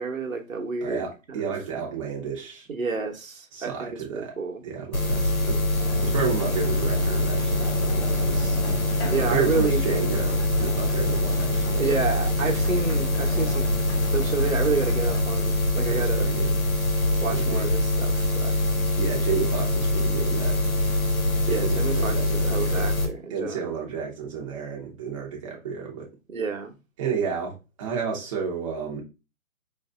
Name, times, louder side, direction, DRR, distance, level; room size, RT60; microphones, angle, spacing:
voice 1, 0.0-1.5 2.7-4.6 9.0-9.8 11.8-13.7 14.1-16.2 17.2-18.6 21.5-23.6 26.3-26.7, right 4 dB, 75° right, 1.0 m, -29 dB
voice 2, 0.8-2.7 3.5-4.3 4.6-5.6 6.0-8.6 9.2-11.9 15.8-16.6 17.3-17.7 19.0-20.6 21.4-22.9 23.3-26.1 27.0-29.0, right 6 dB, 25° right, 0.7 m, -32 dB
sound 1, 4.9-23.0, left 1 dB, 90° left, 1.2 m, -24 dB
sound 2, 5.8-15.2, equal, 15° left, 1.1 m, -38 dB
4.6 x 2.7 x 2.3 m
figure-of-eight pair, 135°, 41 cm